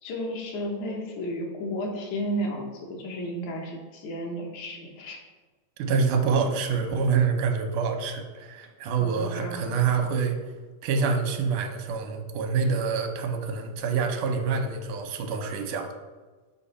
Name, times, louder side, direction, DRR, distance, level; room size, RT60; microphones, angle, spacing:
voice 1, 0.0-5.2 9.0-10.0, equal, 75° left, 0 dB, 2.5 m, -33 dB
voice 2, 5.8-10.4 10.8-15.9, right 5 dB, 90° right, 5 dB, 2.3 m, -26 dB
7.6 x 5.5 x 4.2 m, 1.3 s
omnidirectional pair, 3.5 m